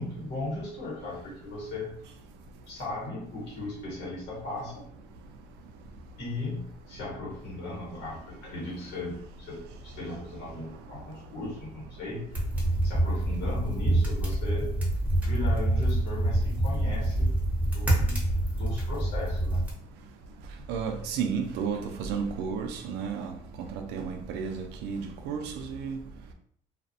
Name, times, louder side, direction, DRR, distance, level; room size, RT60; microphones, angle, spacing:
voice 1, 0.0-1.9 2.7-4.8 6.2-12.4 12.8-14.7 15.2-17.4 17.7-18.2 18.5-19.6, left 2 dB, 90° left, -4 dB, 1.2 m, -37 dB
sound 1, 12.3-19.7, right 1 dB, 10° right, 0.8 m, -26 dB
voice 2, 20.7-26.0, right 6 dB, 90° right, 5 dB, 0.4 m, -32 dB
2.3 x 2.1 x 2.6 m, 0.64 s
cardioid pair, 110°, 17 cm